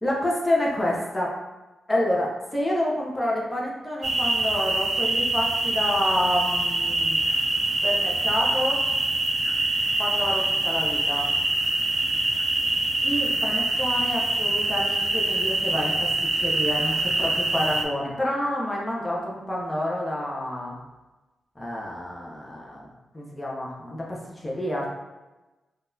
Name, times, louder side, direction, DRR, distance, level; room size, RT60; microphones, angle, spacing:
voice 1, 0.0-1.3 1.9-7.2 7.8-8.8 10.0-11.3 13.0-20.8 21.6-22.8 23.1-24.9, left 1 dB, 15° left, -4 dB, 0.5 m, -28 dB
sound 1, 4.0-17.8, right 2 dB, 45° right, 0.3 m, -24 dB
3.7 x 2.2 x 2.6 m, 1.1 s
wide cardioid pair, 135°, 0 cm